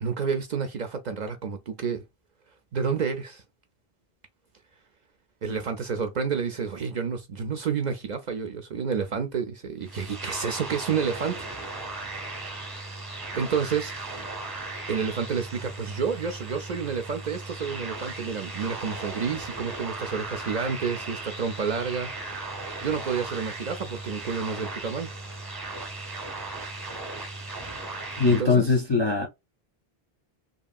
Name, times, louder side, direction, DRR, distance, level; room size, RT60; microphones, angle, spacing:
voice 1, 0.0-2.0 2.7-3.4 5.4-11.5 12.1-12.5 13.3-13.9 14.9-22.1 22.8-25.1 28.4-28.8, right 6 dB, 55° right, 0.5 m, -29 dB
sound 1, 9.8-28.4, right 2 dB, 25° right, 0.8 m, -37 dB
voice 2, 28.2-29.3, left 4 dB, 40° left, 0.4 m, -21 dB
2.9 x 2.6 x 2.3 m
omnidirectional pair, 1.0 m